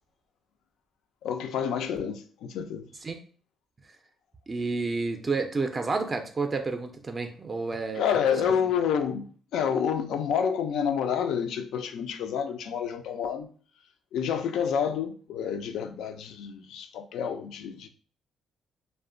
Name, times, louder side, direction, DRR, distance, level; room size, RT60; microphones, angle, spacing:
voice 1, 1.2-2.9 8.0-13.5 14.1-17.9, left 7 dB, 80° left, 0.3 m, -29 dB
voice 2, 4.5-8.1, right 3 dB, 30° right, 0.3 m, -30 dB
2.7 x 2.1 x 2.5 m
cardioid pair, 90°, 0 cm